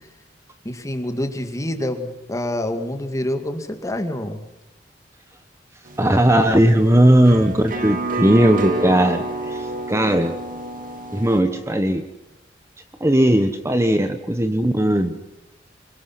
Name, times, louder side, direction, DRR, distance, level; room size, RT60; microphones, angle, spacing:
voice 1, 0.6-4.4, left 1 dB, 20° left, 7 dB, 2.2 m, -27 dB
sound 1, 5.9-11.4, right 2 dB, 50° right, 2.6 m, -29 dB
voice 2, 6.0-10.3 11.1-12.0 13.0-15.1, right 1 dB, 15° right, 8 dB, 1.1 m, -17 dB
26.5 x 23.5 x 5.9 m, 0.92 s
head